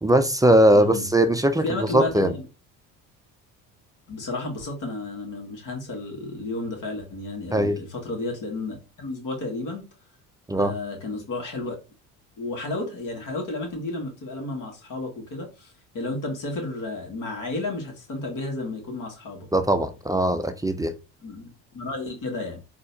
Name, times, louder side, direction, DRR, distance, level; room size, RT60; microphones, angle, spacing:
voice 1, 0.0-2.3 7.5-7.8 10.5-10.7 19.5-20.9, right 1 dB, 10° right, 0.5 m, -20 dB
voice 2, 0.7-1.1 1.6-2.4 4.1-9.9 10.6-11.7 12.4-19.5 21.2-22.6, left 2 dB, 45° left, 1.9 m, -32 dB
3.9 x 2.9 x 2.7 m
hypercardioid pair, 70°, 42 cm